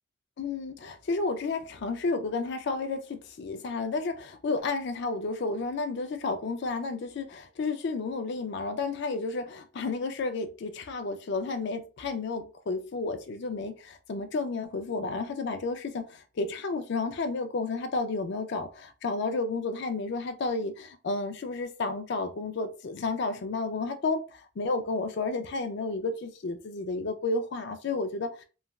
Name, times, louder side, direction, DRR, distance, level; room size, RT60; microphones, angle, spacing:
voice 1, 0.4-28.4, left 3 dB, 50° left, 0.4 m, -32 dB
3.1 x 2.2 x 2.3 m
head